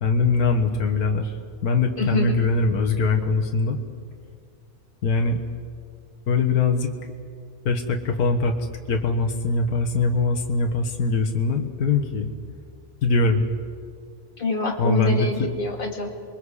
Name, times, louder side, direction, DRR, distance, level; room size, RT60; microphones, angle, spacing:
voice 1, 0.0-1.3 1.6-3.8 5.0-5.4 6.3-6.9 7.7-8.5 8.9-12.3 13.0-13.4 14.8-15.5, left 3 dB, 70° left, 3 dB, 1.9 m, -22 dB
voice 2, 2.0-2.4 14.4-16.1, left 3 dB, 35° left, 1 dB, 2.3 m, -26 dB
28.0 x 22.5 x 4.9 m, 2.2 s
omnidirectional pair, 1.7 m